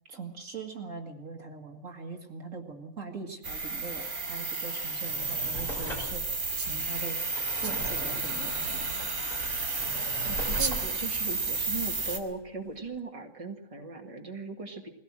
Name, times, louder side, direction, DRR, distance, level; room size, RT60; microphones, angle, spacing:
voice 1, 0.1-6.4 6.7-7.2 7.6-8.9, right 4 dB, 65° right, 3 dB, 2.4 m, -41 dB
sound 1, 3.4-12.2, right 3 dB, 80° right, 3.2 m, -32 dB
Drawer open or close, 4.8-12.5 13.0-13.1, equal, 30° left, 6.4 m, -41 dB
sound 2, 6.6-6.9 7.5-8.0 8.9-9.0 10.2-10.3 10.6-10.8 11.1-11.6 12.0-12.3, right 5 dB, 40° right, 1.3 m, -36 dB
voice 2, 10.2-14.9, right 3 dB, 25° right, 2 dB, 2.0 m, -38 dB
21.0 x 17.0 x 7.5 m, 0.90 s
omnidirectional pair, 1.5 m